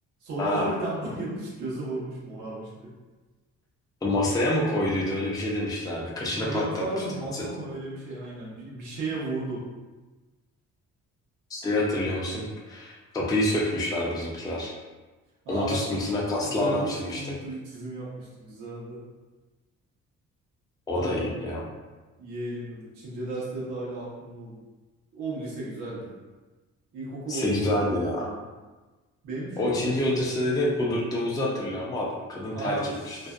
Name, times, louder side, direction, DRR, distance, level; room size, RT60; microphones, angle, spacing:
voice 1, 0.2-2.9 6.4-9.6 15.4-16.0 16.4-19.0 20.9-21.3 22.2-24.6 25.1-26.1 26.9-28.4 29.2-29.9 32.4-33.3, right 2 dB, 85° right, -5 dB, 0.9 m, -34 dB
voice 2, 4.0-7.0 7.3-7.5 11.5-14.7 15.5-17.3 20.9-21.6 27.3-28.3 29.6-33.2, left 1 dB, 15° left, -4 dB, 0.4 m, -27 dB
2.6 x 2.1 x 2.3 m, 1.2 s
cardioid pair, 90°, 30 cm